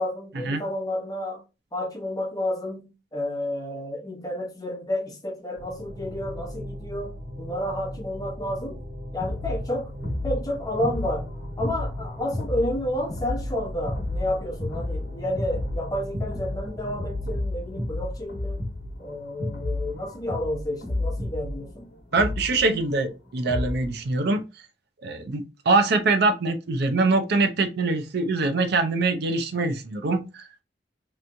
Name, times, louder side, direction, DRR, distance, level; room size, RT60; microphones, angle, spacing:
voice 1, 0.0-1.4 1.7-8.8 9.1-9.9 10.2-11.3 11.6-18.7 19.0-21.9, left 1 dB, 20° left, 1.0 m, -30 dB
sound 1, 5.6-17.4, equal, 45° right, 2.1 m, -38 dB
sound 2, 9.2-24.0, left 1 dB, 75° left, 1.0 m, -32 dB
voice 2, 22.1-24.4 25.0-30.5, right 3 dB, 60° right, 0.5 m, -23 dB
3.3 x 3.0 x 2.6 m
head